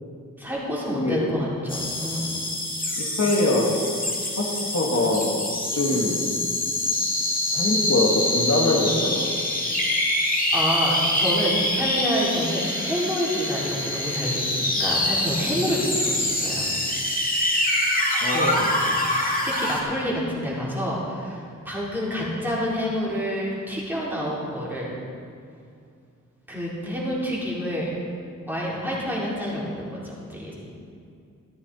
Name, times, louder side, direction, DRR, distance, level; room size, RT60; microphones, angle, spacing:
voice 1, 0.4-2.3 5.9-6.2 10.5-16.7 18.3-18.6 19.4-24.9 26.5-27.9 28.5-30.5, equal, 5° right, -7 dB, 3.7 m, -28 dB
sound 1, 1.7-19.8, left 1 dB, 25° left, 2.2 m, -25 dB
voice 2, 3.0-3.8 4.4-5.3 5.7-6.2 7.5-9.2 18.2-18.7, left 2 dB, 55° left, -2 dB, 1.8 m, -23 dB
13.5 x 13.0 x 4.2 m, 2.4 s
wide cardioid pair, 110°, 33 cm